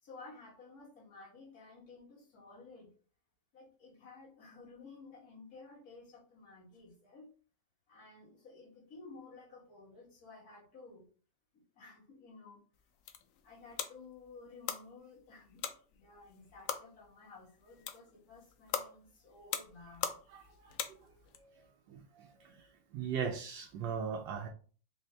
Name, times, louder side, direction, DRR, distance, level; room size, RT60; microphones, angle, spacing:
voice 1, 0.0-2.9 3.5-7.3 7.9-11.1 11.5-12.6 13.4-20.2, left 3 dB, 55° left, -5 dB, 2.2 m, -54 dB
sound 1, 12.8-21.4, left 8 dB, 90° left, 0.7 m, -43 dB
voice 2, 20.3-20.7 21.9-22.7 22.9-24.5, right 6 dB, 75° right, 3 dB, 1.2 m, -39 dB
4.2 x 2.7 x 3.3 m, 0.40 s
omnidirectional pair, 2.0 m